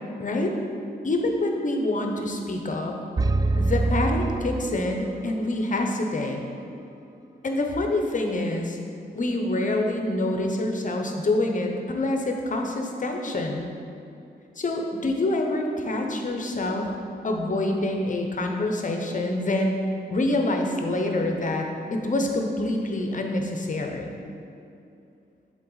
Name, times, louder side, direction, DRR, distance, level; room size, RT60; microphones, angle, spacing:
voice 1, 0.2-0.5 1.0-2.9 3.6-6.4 7.4-8.8 9.1-13.7 14.6-16.9 17.2-19.8 20.1-24.1, left 2 dB, 45° left, 2 dB, 0.8 m, -26 dB
sound 1, 3.2-5.3, right 2 dB, 20° right, 0.3 m, -25 dB
7.4 x 4.0 x 4.0 m, 2.7 s
cardioid pair, 65°, 18 cm